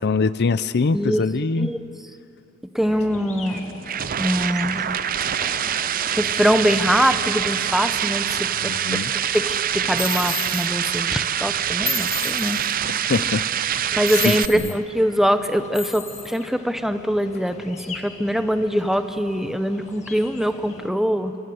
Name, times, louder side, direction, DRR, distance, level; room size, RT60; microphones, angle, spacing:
voice 1, 0.0-1.7 8.6-9.1 13.1-13.4 13.7-14.0 14.2-14.6, left 4 dB, 50° left, 15 dB, 0.5 m, -23 dB
voice 2, 2.7-3.6 4.2-4.9 6.2-9.0 9.3-12.6 12.9-13.3 13.9-21.3, equal, ahead, 9 dB, 0.9 m, -23 dB
sound 1, 2.8-20.9, left 2 dB, 30° left, 1.9 m, -41 dB
sound 2, 3.5-14.5, right 10 dB, 40° right, 0.5 m, -25 dB
sound 3, 10.0-10.7 11.9-12.7 14.1-14.8 15.7-16.4, left 4 dB, 15° left, 1.9 m, -31 dB
27.5 x 26.0 x 8.0 m, 2.9 s
head